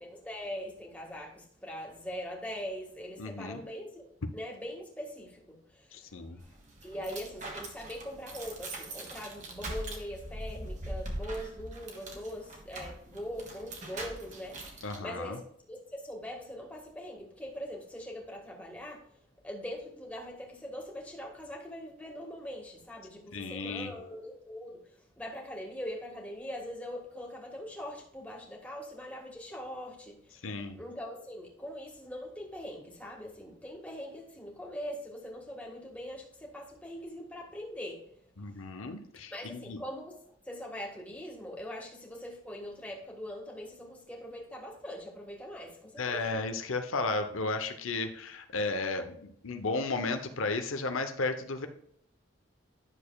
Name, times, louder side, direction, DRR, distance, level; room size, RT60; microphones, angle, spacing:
voice 1, 0.0-6.5 6.8-15.4 15.7-19.0 19.4-24.8 25.2-30.5 30.8-38.0 39.3-40.2 40.4-46.2, equal, 5° left, -1 dB, 1.6 m, -42 dB
voice 2, 3.2-3.6 5.9-6.4 14.8-15.4 23.3-23.9 30.4-30.8 38.4-39.8 46.0-51.7, left 3 dB, 85° left, 7 dB, 0.8 m, -34 dB
sound 1, 6.4-15.0, right 1 dB, 35° right, 1.3 m, -42 dB
10.5 x 6.6 x 2.3 m, 0.67 s
head